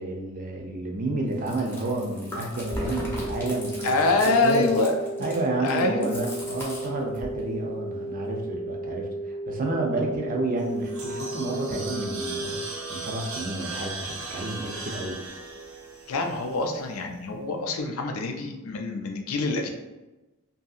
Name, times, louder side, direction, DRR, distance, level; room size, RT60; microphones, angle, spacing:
voice 1, 0.0-4.7 5.2-12.6 12.9-15.2, right 2 dB, 40° right, 1 dB, 0.5 m, -30 dB
Chewing mastication, 1.3-7.4, equal, 10° left, 0.7 m, -38 dB
sound 1, 2.7-12.7, right 1 dB, 50° left, 0.7 m, -35 dB
voice 2, 3.8-5.3 5.6-6.1 16.1-19.7, left 3 dB, 80° left, 3 dB, 0.4 m, -25 dB
sound 2, 10.6-16.9, right 3 dB, 85° right, 0.8 m, -37 dB
2.7 x 2.7 x 2.3 m, 1.1 s
head